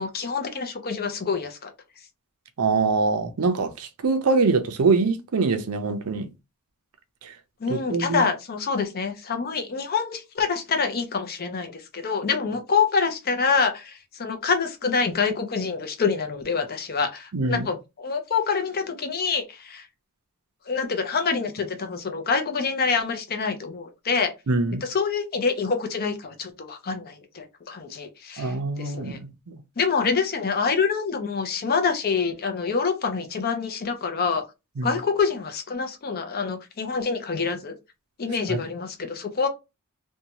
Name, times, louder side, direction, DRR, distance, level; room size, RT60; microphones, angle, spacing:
voice 1, 0.0-1.7 7.6-19.9 20.7-24.3 24.8-29.2 29.8-34.4 34.8-37.7 38.2-39.5, left 5 dB, 45° left, 0.6 m, -26 dB
voice 2, 2.6-6.3 7.2-7.3 7.7-8.2 17.3-17.7 24.5-24.8 28.4-29.6 34.8-34.9 38.5-38.6, right 4 dB, 85° right, 0.5 m, -24 dB
2.7 x 2.2 x 2.8 m
head